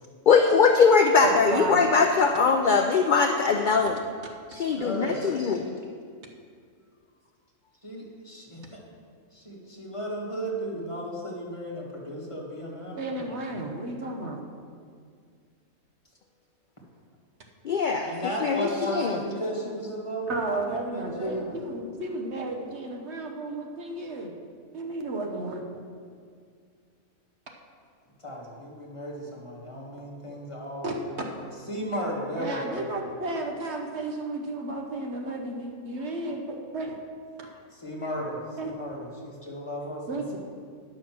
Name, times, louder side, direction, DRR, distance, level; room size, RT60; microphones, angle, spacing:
voice 1, 0.3-4.0 4.5-5.8 17.6-18.1 18.4-19.2, left 5 dB, 65° left, 4 dB, 0.5 m, -21 dB
voice 2, 1.2-1.9 12.9-14.4 20.3-24.3 24.7-25.6 30.8-30.9 32.4-37.0 38.6-38.8 40.1-40.4, right 2 dB, 55° right, 2 dB, 1.2 m, -33 dB
voice 3, 4.7-5.5 7.8-8.8 9.3-13.6 17.9-20.4 20.7-21.5 28.2-31.4 31.7-32.9 37.7-40.4, equal, 25° left, -3 dB, 1.7 m, -35 dB
10.0 x 6.6 x 6.0 m, 2.1 s
omnidirectional pair, 1.4 m